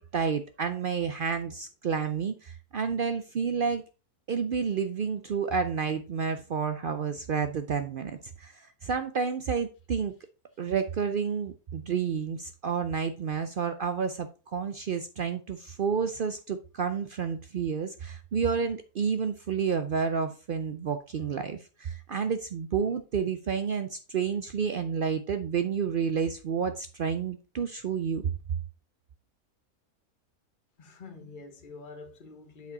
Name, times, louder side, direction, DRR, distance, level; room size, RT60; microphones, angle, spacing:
voice 1, 0.0-3.8 4.3-10.1 10.6-28.2, right 6 dB, 75° right, 0.4 m, -30 dB
voice 2, 30.8-32.7, left 4 dB, 35° left, 1.3 m, -46 dB
8.2 x 4.8 x 4.0 m
omnidirectional pair, 1.6 m